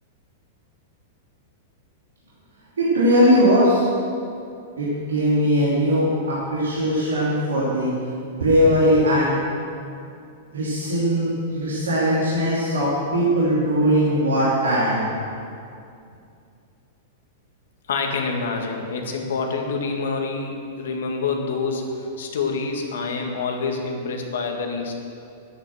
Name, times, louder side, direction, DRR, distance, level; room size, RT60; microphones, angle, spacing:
voice 1, 2.8-3.9 4.8-6.1 6.5-7.9 8.3-9.4 10.5-15.1, equal, 90° right, -8 dB, 2.9 m, -19 dB
voice 2, 17.9-24.9, left 4 dB, 75° left, 2 dB, 1.8 m, -27 dB
10.5 x 9.6 x 6.3 m, 2.5 s
hypercardioid pair, 115°, 0 cm